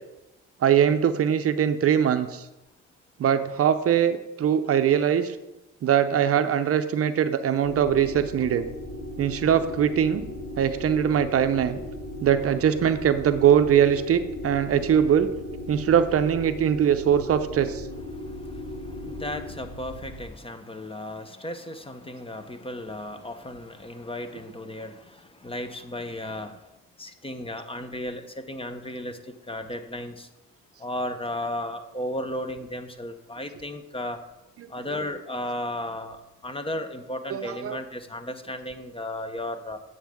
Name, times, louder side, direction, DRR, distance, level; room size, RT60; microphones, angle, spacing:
voice 1, 0.6-2.4 3.2-5.4 5.8-8.7 9.2-10.2 10.6-11.8 12.2-15.3 15.7-17.9 37.3-37.8, right 9 dB, 50° right, 9 dB, 0.6 m, -22 dB
sound 1, 7.6-20.3, left 1 dB, 85° left, 2.6 m, -37 dB
voice 2, 18.1-26.6 27.0-30.3 30.8-34.2 34.7-39.8, left 1 dB, 20° left, 9 dB, 0.7 m, -35 dB
8.9 x 6.6 x 3.6 m, 0.99 s
cardioid pair, 90°, 30 cm